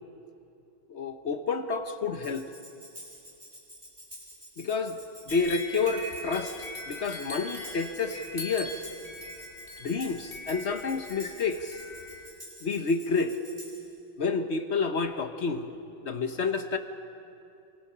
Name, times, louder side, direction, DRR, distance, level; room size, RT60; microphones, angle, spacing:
voice 1, 0.9-2.5 4.6-5.0 5.3-6.5 6.9-8.8 9.8-11.8 12.6-13.4 14.2-15.7 16.0-16.8, left 4 dB, 45° left, 7 dB, 0.9 m, -29 dB
Tambourine, 2.2-13.9, equal, 15° right, 7.8 m, -49 dB
sound 1, 5.3-12.3, left 2 dB, 25° left, 2.4 m, -41 dB
27.5 x 25.0 x 5.7 m, 2.7 s
omnidirectional pair, 2.3 m